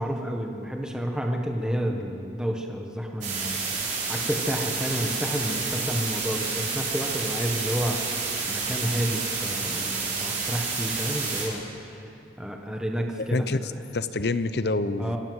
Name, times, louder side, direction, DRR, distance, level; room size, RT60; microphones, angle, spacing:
voice 1, 0.0-3.6 4.1-12.1 12.4-13.5 15.0-15.2, equal, 5° right, 2 dB, 1.4 m, -30 dB
sound 1, 3.2-11.4, right 4 dB, 40° right, 4.9 m, -29 dB
voice 2, 13.3-15.2, left 2 dB, 55° left, 13 dB, 0.8 m, -27 dB
26.5 x 13.0 x 8.0 m, 2.8 s
head